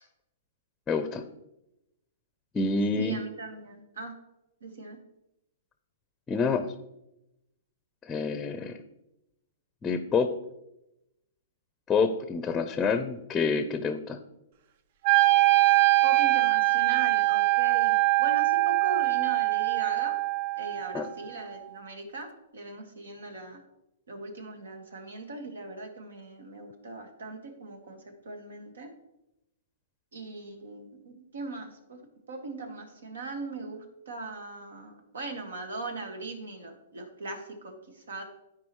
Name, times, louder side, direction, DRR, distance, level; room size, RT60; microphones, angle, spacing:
voice 1, 0.9-1.2 2.5-3.2 6.3-6.7 8.1-8.8 9.8-10.3 11.9-14.2 20.9-21.1, left 4 dB, 15° left, 9 dB, 0.5 m, -27 dB
voice 2, 3.0-4.1 4.6-5.0 16.0-20.2 20.6-23.6 24.1-28.0 28.2-28.9 30.1-32.0 32.3-38.2, right 3 dB, 90° right, 5 dB, 1.7 m, -40 dB
Wind instrument woodwind instrument, 15.0-21.1, right 18 dB, 55° right, 0.5 m, -23 dB
13.0 x 4.8 x 3.1 m, 0.90 s
hypercardioid pair, 140°, 0 cm